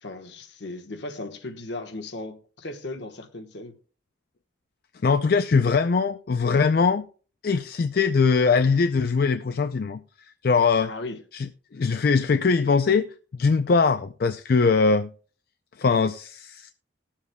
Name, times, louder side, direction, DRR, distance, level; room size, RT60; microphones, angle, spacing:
voice 1, 0.0-3.8 10.8-11.2, left 2 dB, 70° left, 1.2 m, -37 dB
voice 2, 5.0-7.0 7.4-10.0 10.4-10.9 11.3-11.5 11.7-13.1 13.3-15.1 15.8-16.7, left 4 dB, 50° left, 0.4 m, -21 dB
19.5 x 7.3 x 2.2 m
head